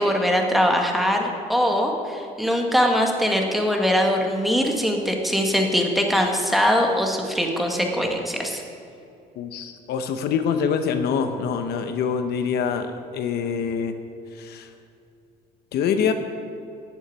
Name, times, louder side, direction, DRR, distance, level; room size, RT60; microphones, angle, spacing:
voice 1, 0.0-8.6, equal, ahead, 1 dB, 1.9 m, -22 dB
voice 2, 9.4-13.9 14.4-14.7 15.7-16.1, left 6 dB, 70° left, 8 dB, 1.0 m, -25 dB
11.5 x 7.3 x 9.5 m, 2.5 s
cardioid pair, 110°, 17 cm